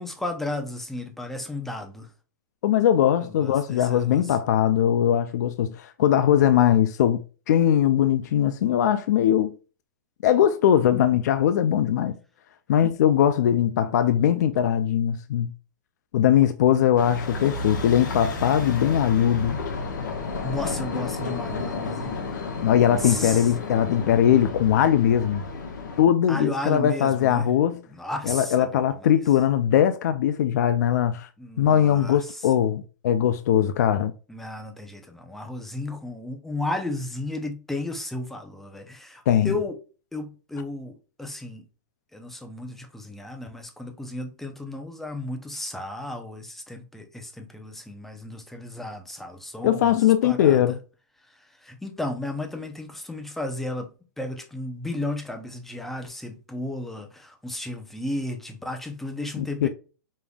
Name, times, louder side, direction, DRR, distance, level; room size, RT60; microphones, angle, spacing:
voice 1, 0.0-2.1 3.2-4.4 16.7-16.9 20.4-22.2 22.6-23.5 26.3-27.5 27.9-29.1 31.4-32.5 34.3-39.8 40.1-41.6 42.1-50.0 50.2-50.6 51.6-53.9 54.2-59.7, left 2 dB, 5° left, 0.6 m, -34 dB
voice 2, 2.6-9.5 10.2-12.1 12.7-15.5 16.1-19.6 22.6-25.4 26.0-27.8 28.3-31.3 31.6-34.1 39.3-39.5 49.6-50.8 59.4-59.7, left 10 dB, 65° left, 0.4 m, -20 dB
sound 1, 17.0-26.0, left 3 dB, 80° left, 1.2 m, -32 dB
5.3 x 3.4 x 2.3 m
hypercardioid pair, 155°, 10 cm